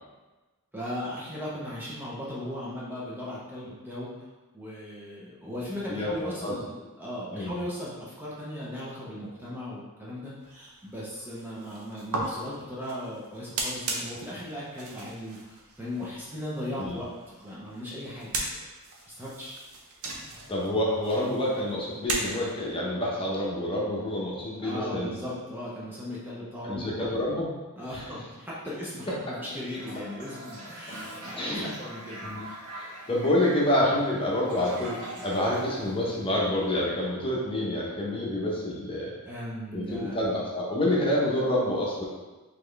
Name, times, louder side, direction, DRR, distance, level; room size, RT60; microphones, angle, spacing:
voice 1, 0.7-4.2 4.5-18.7 19.0-19.5 24.6-27.1 27.8-32.2 39.2-40.2, left 1 dB, 10° right, -7 dB, 0.7 m, -37 dB
sound 1, 10.4-22.7, right 2 dB, 70° right, 0.7 m, -38 dB
voice 2, 20.5-25.1 26.6-27.5 27.9-28.0 29.3-29.4 31.3-31.6 32.2-32.4 32.7-39.1 39.7-42.0, left 1 dB, 25° left, -5 dB, 0.8 m, -28 dB
Toilet flush, 29.8-36.7, right 1 dB, 85° right, 1.2 m, -43 dB
4.2 x 3.1 x 3.3 m, 1.2 s
head